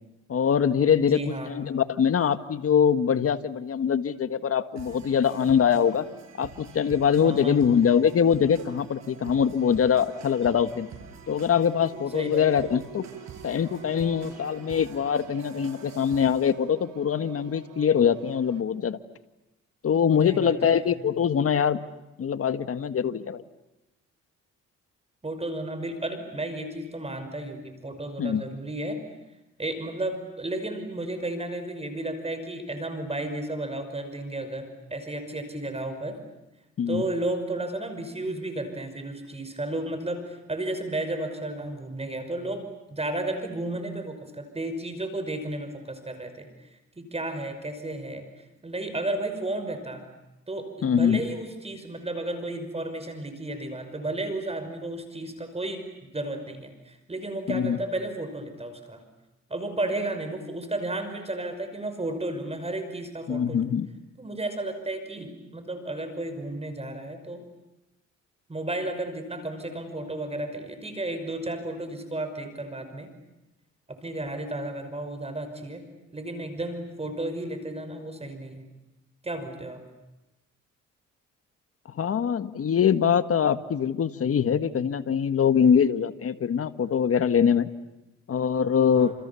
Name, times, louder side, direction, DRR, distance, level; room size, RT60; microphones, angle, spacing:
voice 1, 0.3-6.0 6.4-10.9 11.3-13.1 13.4-19.0 19.8-21.8 22.2-23.4 28.2-28.5 36.8-37.0 50.8-51.2 57.5-57.8 63.3-63.9 81.9-87.7 88.3-89.1, left 7 dB, 50° left, 10 dB, 1.8 m, -23 dB
voice 2, 1.0-1.5 7.2-7.6 12.1-12.6 20.2-20.9 25.2-29.0 29.6-36.2 36.9-46.5 47.0-50.1 50.5-55.9 56.1-59.0 59.5-63.6 64.2-67.4 68.5-73.1 73.9-75.8 76.1-78.7 79.2-79.8 88.9-89.1, right 2 dB, 20° right, 8 dB, 5.6 m, -33 dB
sound 1, 4.8-16.5, right 5 dB, 65° right, 7.2 m, -47 dB
sound 2, 11.0-18.6, right 10 dB, 80° right, 3.3 m, -48 dB
29.0 x 28.5 x 7.1 m, 1.0 s
cardioid pair, 90°, 30 cm